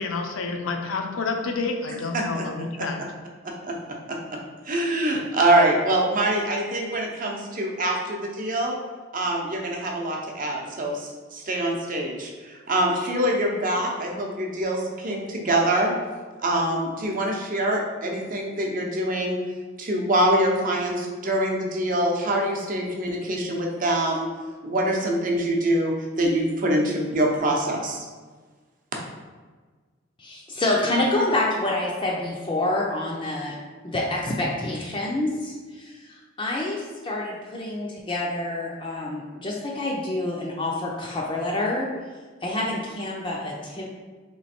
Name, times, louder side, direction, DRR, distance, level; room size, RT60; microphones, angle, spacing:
voice 1, 0.0-3.0, left 3 dB, 85° left, 4 dB, 0.6 m, -29 dB
voice 2, 4.6-8.8 9.1-15.9 16.4-19.4 19.8-24.3 24.6-28.1, right 1 dB, 40° right, 0 dB, 0.7 m, -24 dB
voice 3, 30.2-33.5 33.8-41.9 42.4-43.8, left 2 dB, 25° left, -3 dB, 0.4 m, -27 dB
3.3 x 3.1 x 4.2 m, 1.4 s
head